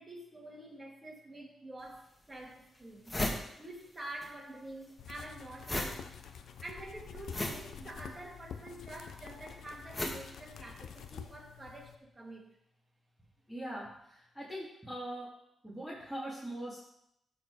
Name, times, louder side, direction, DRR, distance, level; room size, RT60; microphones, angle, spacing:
voice 1, 0.0-3.1 3.6-6.1 6.6-12.5, right 1 dB, 25° right, -1 dB, 2.6 m, -47 dB
sound 1, 1.8-1.9 2.5-2.6 2.8-4.3 4.6-11.1, left 1 dB, 20° left, 1.9 m, -38 dB
sound 2, 5.0-12.0, left 7 dB, 75° left, 0.7 m, -48 dB
voice 2, 13.5-15.3 15.6-16.8, right 1 dB, ahead, -7 dB, 2.7 m, -41 dB
13.0 x 4.4 x 4.9 m, 0.78 s
cardioid pair, 75°, 0 cm